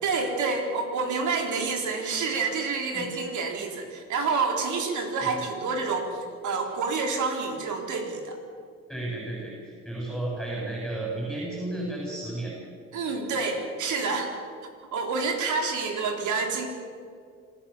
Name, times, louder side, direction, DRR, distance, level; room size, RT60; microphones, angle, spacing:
voice 1, 0.0-6.1 6.4-8.4 12.9-14.3 14.9-16.7, right 4 dB, 75° right, 3 dB, 3.8 m, -28 dB
voice 2, 8.9-12.5, right 2 dB, ahead, -5 dB, 7.9 m, -33 dB
27.0 x 14.5 x 7.3 m, 2.2 s
cardioid pair, 90°, 30 cm